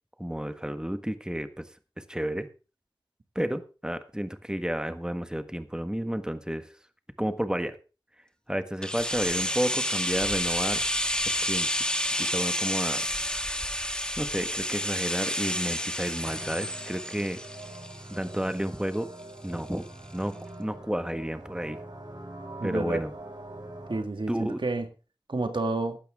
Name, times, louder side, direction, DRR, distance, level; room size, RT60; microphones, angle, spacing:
voice 1, 0.2-1.7 2.1-2.5 3.3-6.7 7.2-7.8 8.5-10.9 11.2-11.7 12.2-13.0 14.2-17.4 18.1-19.1 19.4-19.8 20.1-21.8 22.6-23.1 24.3-24.6, equal, 10° right, 9 dB, 1.5 m, -31 dB
sound 1, 8.8-18.6 18.9-19.0, equal, 10° left, 2.1 m, -30 dB
sound 2, 16.2-24.0, right 2 dB, 60° right, 5.7 m, -43 dB
voice 2, 22.6-23.0 23.9-24.9 25.3-26.0, right 2 dB, 80° right, 7 dB, 1.9 m, -29 dB
15.5 x 12.0 x 3.7 m, 0.33 s
wide cardioid pair, 40°, 8 cm